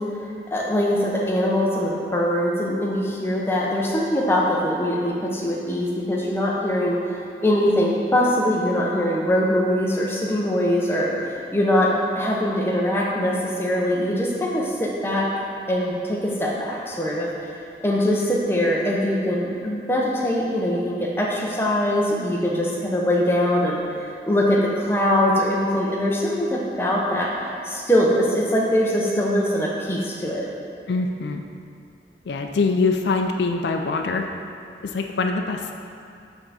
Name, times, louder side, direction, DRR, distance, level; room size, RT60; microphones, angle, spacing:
voice 1, 0.0-15.3 15.7-17.3 17.8-30.5, equal, 15° left, -3 dB, 0.7 m, -22 dB
voice 2, 30.9-31.4 32.3-34.3 34.8-35.7, left 3 dB, 75° left, 4 dB, 0.4 m, -23 dB
8.2 x 3.5 x 4.1 m, 2.5 s
head